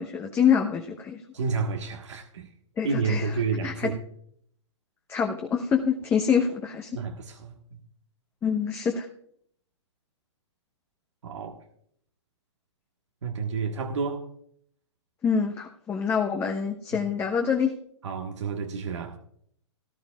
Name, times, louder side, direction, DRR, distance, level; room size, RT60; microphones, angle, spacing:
voice 1, 0.0-1.2 2.8-3.3 3.6-3.9 5.1-6.9 8.4-9.1 15.2-17.7, left 7 dB, 15° left, 1.0 m, -26 dB
voice 2, 1.3-2.5 2.8-4.0 6.9-7.5 11.2-11.6 13.2-14.3 18.0-19.2, right 5 dB, 75° right, 1.5 m, -30 dB
18.0 x 11.5 x 2.4 m
hypercardioid pair, 135°, 15 cm